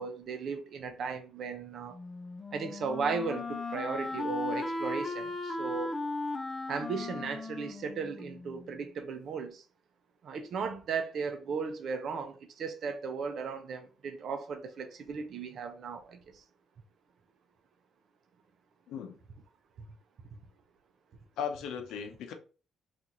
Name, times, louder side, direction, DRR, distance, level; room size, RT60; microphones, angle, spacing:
voice 1, 0.0-2.0 2.5-6.0 6.7-9.6 10.2-16.4, right 5 dB, 65° right, 0.6 m, -36 dB
Wind instrument woodwind instrument, 1.9-8.8, left 2 dB, 30° left, 0.5 m, -37 dB
voice 2, 18.9-19.2 21.4-22.3, left 7 dB, 85° left, 0.6 m, -37 dB
2.9 x 2.5 x 3.7 m
cardioid pair, 90°, 0 cm